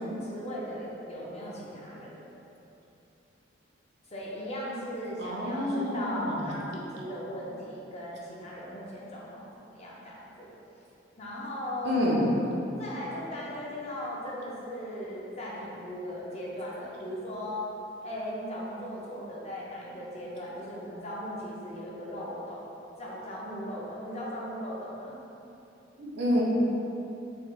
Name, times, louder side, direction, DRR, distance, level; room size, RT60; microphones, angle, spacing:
voice 1, 0.0-2.1 4.1-10.5 11.2-12.2 12.8-17.7 18.0-22.6 23.0-25.1, equal, 35° left, -5 dB, 0.6 m, -38 dB
voice 2, 5.2-6.5 11.8-12.3 26.0-26.4, left 1 dB, 60° right, -4 dB, 0.6 m, -28 dB
4.3 x 3.1 x 2.4 m, 2.9 s
head